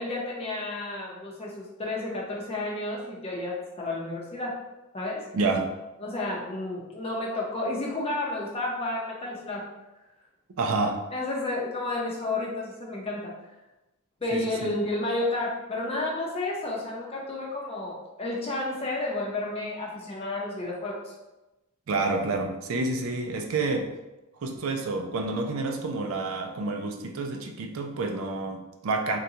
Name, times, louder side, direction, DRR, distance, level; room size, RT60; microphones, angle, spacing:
voice 1, 0.0-4.6 4.9-5.3 6.0-9.7 11.1-13.3 14.2-21.1, left 2 dB, 25° left, -3 dB, 0.6 m, -31 dB
voice 2, 5.3-5.7 10.6-11.0 14.3-14.7 21.9-23.9 24.4-29.2, right 3 dB, 70° right, 3 dB, 0.4 m, -29 dB
3.8 x 2.2 x 2.7 m, 1.0 s
head